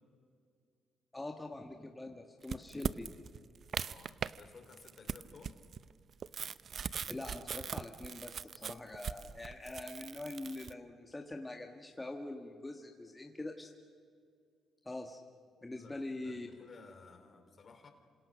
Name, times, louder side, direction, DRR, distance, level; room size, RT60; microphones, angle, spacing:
voice 1, 1.1-3.1 7.1-13.7 14.8-15.2 15.6-16.5, left 2 dB, 15° left, 3 dB, 1.8 m, -44 dB
sound 1, 2.4-4.4 4.7-10.7, right 7 dB, 55° right, 0.7 m, -40 dB
voice 2, 3.8-5.6 15.7-17.9, left 4 dB, 45° left, 6 dB, 4.0 m, -56 dB
27.5 x 26.0 x 6.5 m, 2.2 s
supercardioid pair, 70°, 0 cm